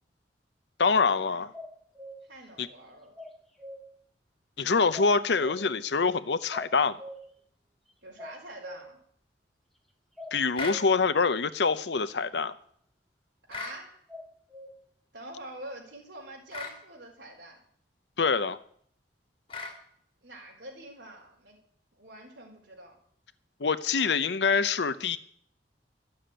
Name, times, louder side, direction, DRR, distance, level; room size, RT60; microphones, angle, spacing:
voice 1, 0.8-1.5 2.6-2.7 4.6-7.0 10.3-12.5 18.2-18.6 23.6-25.2, left 4 dB, 70° left, 0.7 m, -25 dB
sound 1, 1.5-2.2 3.2-3.8 4.9-5.7 6.5-7.2 8.2-8.9 10.2-10.8 14.1-14.7, left 1 dB, ahead, 1.9 m, -43 dB
voice 2, 2.3-3.2 8.0-9.0 13.5-14.0 15.1-17.6 20.2-21.6 22.0-22.9, right 1 dB, 75° right, 4.5 m, -45 dB
sound 2, 10.6-10.8 13.5-13.8 16.5-16.8 19.5-19.8, left 3 dB, 30° left, 2.8 m, -36 dB
13.0 x 7.1 x 9.0 m
head